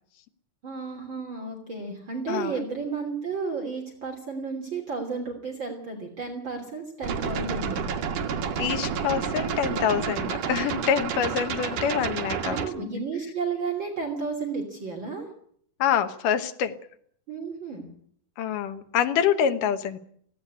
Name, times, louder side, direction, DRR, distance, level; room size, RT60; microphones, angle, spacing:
voice 1, 0.6-7.8 12.4-15.3 17.3-17.9, right 4 dB, 35° right, 2 dB, 3.7 m, -32 dB
sound 1, 7.0-12.7, right 7 dB, 70° right, 3.1 m, -30 dB
voice 2, 8.6-13.0 15.8-16.7 18.4-20.0, left 8 dB, 80° left, 9 dB, 2.9 m, -26 dB
18.0 x 16.5 x 9.9 m, 0.63 s
omnidirectional pair, 3.7 m